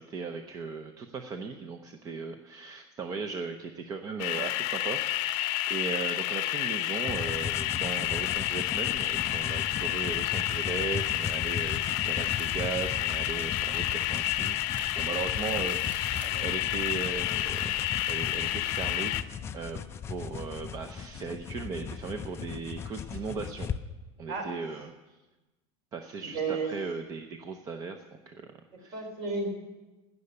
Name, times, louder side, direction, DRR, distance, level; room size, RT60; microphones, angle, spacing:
voice 1, 0.0-17.8 18.1-19.3 19.5-19.8 20.1-23.7 24.2-25.2 25.9-29.1, right 5 dB, 25° right, 6 dB, 0.7 m, -37 dB
sound 1, 4.2-19.2, left 15 dB, 50° left, 0.7 m, -30 dB
sound 2, 7.1-23.8, left 7 dB, 20° left, 0.4 m, -38 dB
sound 3, 10.1-17.0, right 1 dB, 10° right, 2.9 m, -54 dB
voice 2, 26.2-26.7 28.9-29.5, right 4 dB, 50° right, 3 dB, 4.2 m, -33 dB
16.5 x 6.7 x 9.5 m, 1.1 s
cardioid pair, 170°, 14 cm